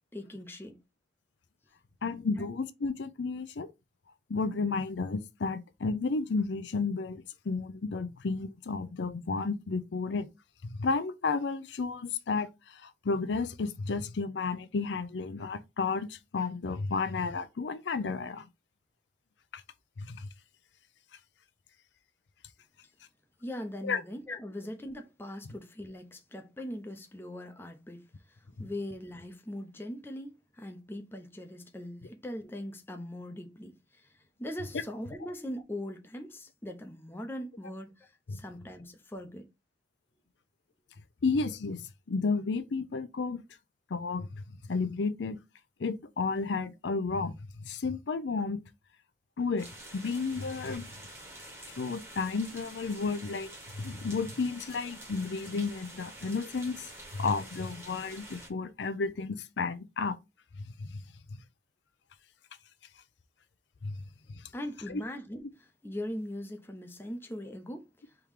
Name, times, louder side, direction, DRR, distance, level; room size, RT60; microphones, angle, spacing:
voice 1, 0.1-0.8 2.4-2.5 23.4-34.1 34.4-39.4 64.5-67.9, left 1 dB, 10° left, 0.6 m, -41 dB
voice 2, 2.0-3.7 4.3-10.3 10.6-18.5 19.5-19.6 20.0-20.3 23.8-24.0 28.6-28.7 38.3-38.4 41.2-43.4 43.9-45.4 45.8-47.3 47.6-48.6 49.4-50.9 51.8-53.5 53.8-56.9 57.2-60.1 60.8-61.0 63.8-64.0 64.9-65.0, left 4 dB, 80° left, 0.5 m, -32 dB
sound 1, 49.6-58.5, right 1 dB, 15° right, 1.2 m, -48 dB
3.6 x 3.0 x 4.8 m
head